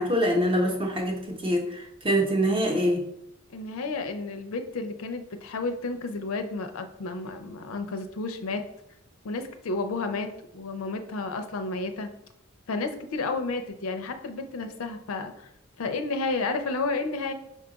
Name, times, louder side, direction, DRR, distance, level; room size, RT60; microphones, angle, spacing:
voice 1, 0.0-3.0, equal, 25° right, 1 dB, 0.8 m, -25 dB
voice 2, 3.5-8.6 9.2-12.1 12.7-15.3 15.8-17.3, left 3 dB, 75° left, 7 dB, 0.5 m, -31 dB
5.4 x 2.3 x 3.8 m, 0.79 s
head